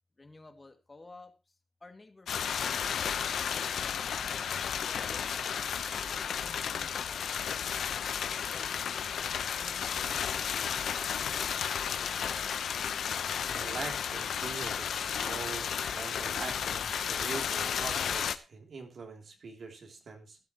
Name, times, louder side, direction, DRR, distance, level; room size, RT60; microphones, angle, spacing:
voice 1, 0.2-1.6 1.8-4.4 4.8-8.1 8.5-10.4, left 2 dB, 25° left, 6 dB, 2.3 m, -54 dB
sound 1, 2.3-18.4, left 8 dB, 80° left, 0.9 m, -33 dB
sound 2, 2.4-17.7, right 1 dB, 5° right, 1.2 m, -61 dB
voice 2, 13.5-20.4, right 4 dB, 55° right, 3 dB, 2.9 m, -43 dB
16.5 x 12.0 x 3.0 m, 0.27 s
wide cardioid pair, 125°, 0 cm